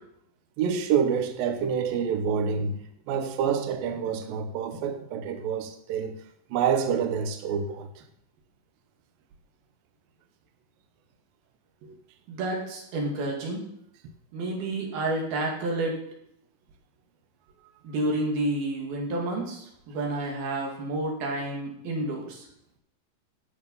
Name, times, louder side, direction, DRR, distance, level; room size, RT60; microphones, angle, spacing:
voice 1, 0.6-2.8 3.1-6.2 6.5-7.9 11.8-11.9, right 7 dB, 85° right, 2.0 m, -27 dB
voice 2, 12.3-13.6 14.3-16.0 17.8-22.4, right 2 dB, 60° right, 3.9 m, -30 dB
11.5 x 7.3 x 5.4 m
omnidirectional pair, 5.4 m